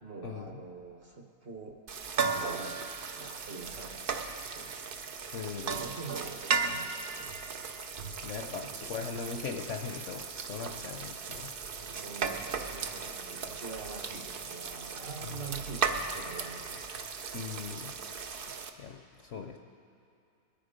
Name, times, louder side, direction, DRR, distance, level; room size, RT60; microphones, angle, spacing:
voice 1, 0.0-1.8 2.1-2.8 3.2-4.3 4.5-4.7 5.6-7.3 8.2-8.8 11.8-16.8, right 4 dB, 45° right, 2 dB, 1.0 m, -45 dB
sound 1, 1.9-18.7, right 5 dB, 80° right, 0.5 m, -36 dB
voice 2, 5.3-5.8 8.2-11.5 15.2-15.3 17.3-17.9 18.3-18.4 18.8-19.6, left 6 dB, 60° left, 3 dB, 0.8 m, -39 dB
21.5 x 8.9 x 5.1 m, 2.6 s
omnidirectional pair, 1.9 m